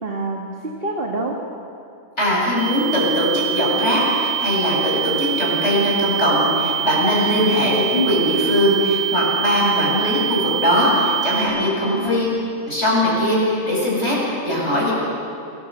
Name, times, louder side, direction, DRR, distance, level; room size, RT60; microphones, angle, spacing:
voice 1, 0.0-1.4 7.5-7.7 9.6-10.1 11.8-12.2, right 2 dB, 40° right, 0 dB, 2.2 m, -28 dB
voice 2, 2.2-12.3 12.6-14.9, left 1 dB, 50° left, -4 dB, 8.5 m, -20 dB
sound 1, 2.6-11.4, right 11 dB, 80° right, 4.6 m, -25 dB
28.0 x 20.0 x 8.0 m, 2.5 s
omnidirectional pair, 1.5 m